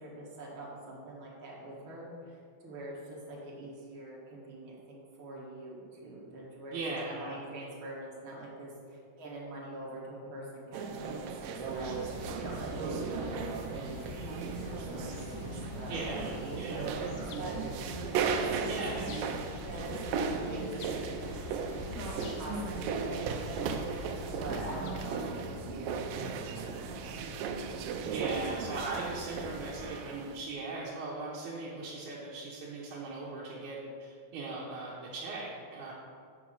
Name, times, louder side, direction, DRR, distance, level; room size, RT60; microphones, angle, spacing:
voice 1, 0.0-6.8 7.1-18.7 19.6-21.4 21.9-23.9 24.3-26.2 26.5-27.5, right 1 dB, 45° right, -4 dB, 2.1 m, -44 dB
voice 2, 6.7-7.4 15.9-16.8 18.7-19.1 28.1-35.9, right 3 dB, 70° right, -6 dB, 2.3 m, -39 dB
sound 1, 10.7-30.4, right 5 dB, 90° right, 2.3 m, -36 dB
sound 2, 11.6-25.1, left 5 dB, 85° left, 2.2 m, -45 dB
sound 3, 17.2-29.8, left 1 dB, 45° left, 2.7 m, -49 dB
7.2 x 5.8 x 6.2 m, 2.2 s
omnidirectional pair, 3.8 m